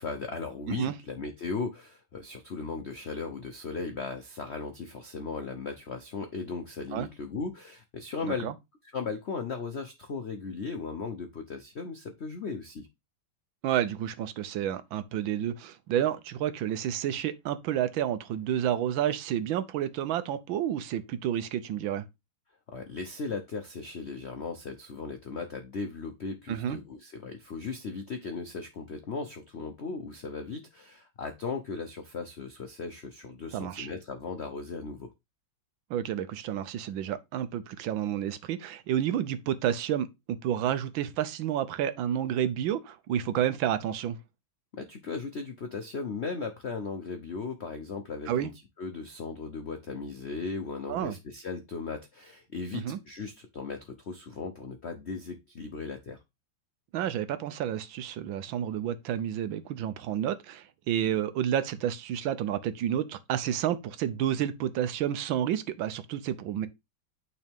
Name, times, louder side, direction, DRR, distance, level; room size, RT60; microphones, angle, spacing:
voice 1, 0.0-8.5 8.9-12.9 22.7-35.1 44.7-48.5 48.8-56.2, left 4 dB, 85° left, 0.5 m, -37 dB
voice 2, 13.6-22.0 26.5-26.8 33.5-33.9 35.9-44.2 48.3-48.5 50.9-51.1 52.7-53.0 56.9-66.7, right 10 dB, 75° right, 1.4 m, -30 dB
8.9 x 4.0 x 3.5 m
omnidirectional pair, 2.3 m